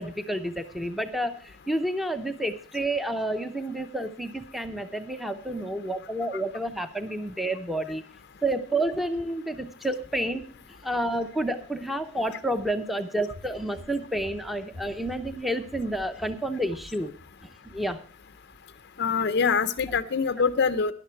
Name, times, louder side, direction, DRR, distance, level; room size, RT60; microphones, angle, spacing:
voice 1, 0.0-8.0 8.4-10.5 10.8-17.1 17.7-18.0, right 1 dB, ahead, 8 dB, 0.6 m, -30 dB
sound 1, 13.3-17.3 17.6-17.8, left 1 dB, 70° right, 5.2 m, -48 dB
voice 2, 19.0-20.9, left 5 dB, 50° left, 11 dB, 0.5 m, -24 dB
13.0 x 11.0 x 4.4 m, 0.42 s
head